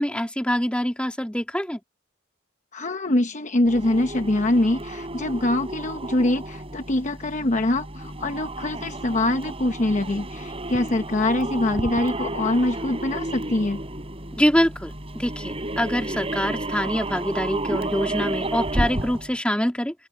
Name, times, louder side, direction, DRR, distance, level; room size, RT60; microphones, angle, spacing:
voice 1, 0.0-1.8 14.4-19.9, equal, 5° left, 2.9 m, -25 dB
voice 2, 2.7-13.8, left 1 dB, 40° left, 1.0 m, -24 dB
sound 1, 3.6-19.3, right 1 dB, 30° right, 6.6 m, -32 dB
open air
head